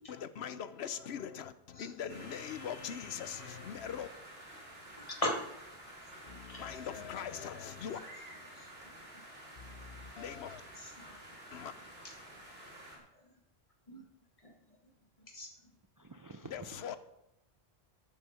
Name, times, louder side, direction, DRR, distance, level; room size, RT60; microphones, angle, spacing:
voice 1, 0.1-4.1 6.6-8.0 10.2-10.6 11.5-11.7 16.5-17.0, left 8 dB, 90° left, 1.0 m, -41 dB
sound 1, 2.1-13.0, right 1 dB, 70° right, 3.0 m, -51 dB
voice 2, 5.0-5.4 6.3-6.7 8.5-9.0 10.8-11.1 12.0-12.1 13.1-13.3 13.9-14.0 14.4-14.5 14.8-14.9 15.2-15.5, left 1 dB, 35° left, 1.8 m, -40 dB
sound 2, 6.3-7.9 9.6-11.3, left 4 dB, 55° left, 1.1 m, -55 dB
voice 3, 16.0-17.0, right 2 dB, 30° right, 0.3 m, -50 dB
12.0 x 9.0 x 5.0 m
omnidirectional pair, 1.0 m